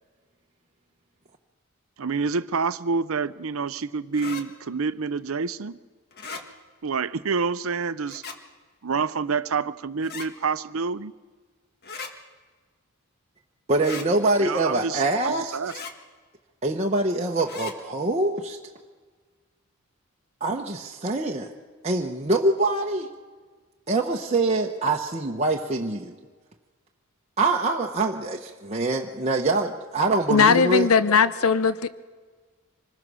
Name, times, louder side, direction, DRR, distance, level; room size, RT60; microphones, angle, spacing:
voice 1, 2.0-5.8 6.8-8.2 8.8-11.1 14.4-15.7, right 5 dB, 65° right, 14 dB, 0.7 m, -28 dB
sound 1, 4.1-4.4 6.1-6.4 8.1-8.4 10.0-10.3 11.8-12.1 13.8-14.1 15.6-15.9 17.4-17.7, left 4 dB, 45° left, 1.7 m, -37 dB
voice 2, 13.7-15.6 16.6-18.6 20.4-21.5 21.8-23.1 23.9-26.1 27.4-30.9, right 2 dB, 30° right, 0 dB, 1.0 m, -24 dB
voice 3, 30.3-31.9, left 5 dB, 70° left, 15 dB, 0.7 m, -19 dB
26.0 x 20.5 x 6.3 m, 1.4 s
head